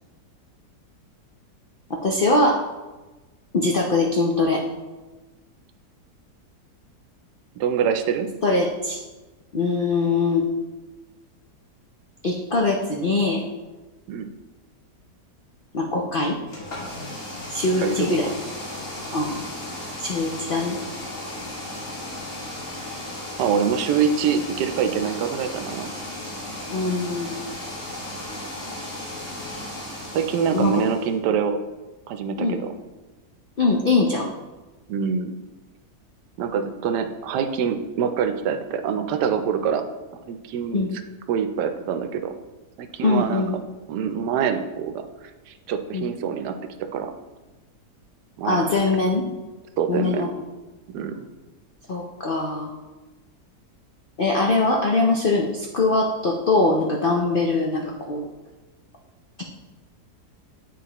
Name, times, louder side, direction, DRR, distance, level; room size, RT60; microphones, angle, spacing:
voice 1, 2.0-2.6 3.5-4.6 8.4-9.0 9.5-10.4 12.2-13.4 15.7-16.4 17.5-18.3 19.1-19.3 20.0-20.8 26.7-27.4 30.5-30.8 32.4-32.6 33.6-34.3 40.7-41.0 43.0-43.6 45.9-46.1 48.4-49.3 49.9-50.3 51.9-52.7 54.2-58.3, left 3 dB, 80° left, 0 dB, 0.4 m, -22 dB
voice 2, 7.6-8.3 14.1-14.3 17.8-18.3 23.4-25.9 30.1-31.6 32.1-32.7 34.9-35.4 36.4-39.8 40.3-40.9 41.3-42.3 42.8-43.4 43.9-45.1 45.5-47.1 48.4-48.7 49.8-50.3 50.9-51.2, right 7 dB, 80° right, 8 dB, 1.2 m, -25 dB
sound 1, 16.5-31.1, left 1 dB, 50° left, 2.0 m, -35 dB
10.0 x 3.4 x 2.9 m, 1.2 s
omnidirectional pair, 1.8 m